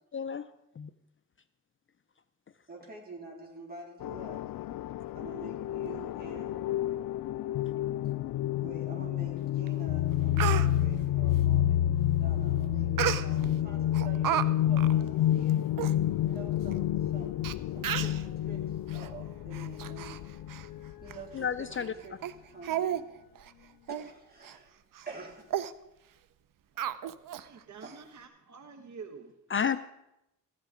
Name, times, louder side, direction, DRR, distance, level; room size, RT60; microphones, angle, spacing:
voice 1, 0.1-0.5 0.8-0.9 21.3-21.9 29.5-29.8, left 7 dB, 40° left, 12 dB, 0.5 m, -30 dB
voice 2, 2.7-4.6 5.1-6.6 8.6-11.8 12.1-15.6 16.3-20.2 21.0-22.2 22.5-23.0 23.9-24.7 25.1-25.5 27.8-27.9, right 3 dB, 30° right, -2 dB, 4.0 m, -47 dB
sound 1, 4.0-21.2, left 12 dB, 85° left, 0.5 m, -29 dB
Speech, 9.7-9.8 10.1-10.7 13.0-13.5 13.9-14.5 14.8-14.9 15.5-15.6 15.8-15.9 16.7-16.8 17.4-17.5 17.8-18.2 18.9-19.1 19.5-20.2 20.5-20.7 21.1-21.2 21.7-21.9 22.2-22.3 22.6-23.0 23.4-23.5 23.9-24.1 24.4-24.6 25.0-25.1 25.5-25.7 26.8-27.4 27.8-27.9, right 11 dB, 75° right, 0.7 m, -32 dB
voice 3, 26.7-29.4, right 5 dB, 55° right, 5 dB, 1.3 m, -49 dB
15.5 x 12.0 x 5.1 m, 0.86 s
wide cardioid pair, 120°, 33 cm